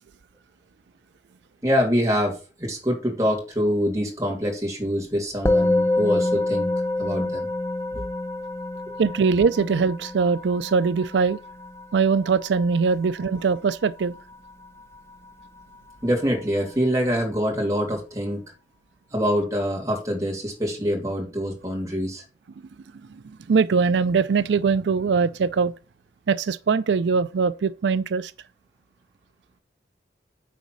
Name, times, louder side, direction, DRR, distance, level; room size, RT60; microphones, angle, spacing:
voice 1, 1.6-6.7 7.0-7.5 7.9-8.0 16.0-18.4 19.1-22.2, equal, 20° right, 2.7 m, -25 dB
Musical instrument, 5.5-15.0, left 2 dB, 15° left, 0.6 m, -27 dB
voice 2, 9.0-11.4 11.9-14.1 23.5-25.7 26.3-28.3, right 5 dB, 85° right, 0.4 m, -21 dB
9.4 x 4.1 x 6.1 m
head